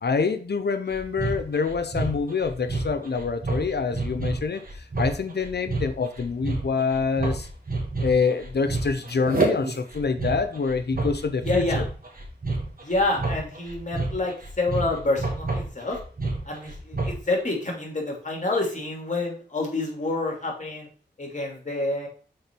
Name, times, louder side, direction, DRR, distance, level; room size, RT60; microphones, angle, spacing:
voice 1, 0.0-7.5 8.0-11.9, left 5 dB, 65° left, 9 dB, 0.8 m, -26 dB
sound 1, 0.9-17.3, right 3 dB, 50° right, 2.1 m, -29 dB
voice 2, 11.4-11.8 12.8-16.0 16.4-20.9 21.2-22.1, left 2 dB, 40° left, 0 dB, 2.7 m, -28 dB
6.5 x 4.1 x 4.6 m, 0.41 s
cardioid pair, 50°, 19 cm